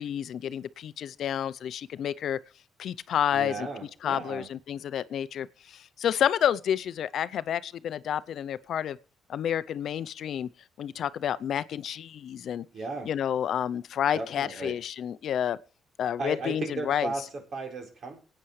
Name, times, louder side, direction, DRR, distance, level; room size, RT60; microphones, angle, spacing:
voice 1, 0.0-2.4 2.8-3.7 4.0-9.0 9.3-10.5 10.8-12.7 13.1-15.6 16.0-17.1, left 9 dB, 65° left, 0.6 m, -30 dB
voice 2, 3.3-4.5 12.7-13.1 14.1-14.8 16.2-18.2, right 3 dB, 55° right, 4.3 m, -35 dB
23.5 x 9.0 x 3.2 m
cardioid pair, 90°, 0 cm